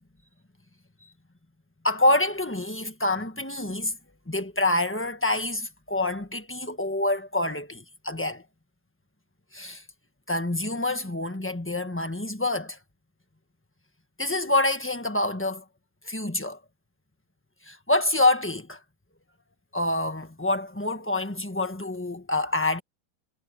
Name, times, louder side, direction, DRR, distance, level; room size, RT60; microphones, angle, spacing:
voice 1, 1.8-3.9 4.3-8.4 9.5-9.8 10.3-12.8 14.2-15.6 16.0-16.6 17.7-18.8 19.7-22.8, left 2 dB, 10° left, 1.0 m, -26 dB
omnidirectional pair, 2.2 m